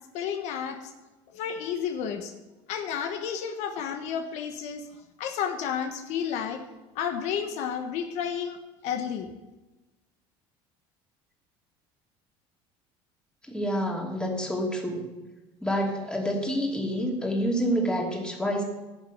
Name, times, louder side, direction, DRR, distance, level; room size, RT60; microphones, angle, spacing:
voice 1, 0.1-0.9 1.3-2.3 2.7-4.8 5.2-6.6 6.9-8.6 8.8-9.3, left 8 dB, 70° left, 5 dB, 1.3 m, -31 dB
voice 2, 13.5-15.1 15.6-18.6, equal, 5° left, 0 dB, 2.9 m, -28 dB
11.5 x 6.7 x 8.0 m, 1.1 s
supercardioid pair, 105°, 12 cm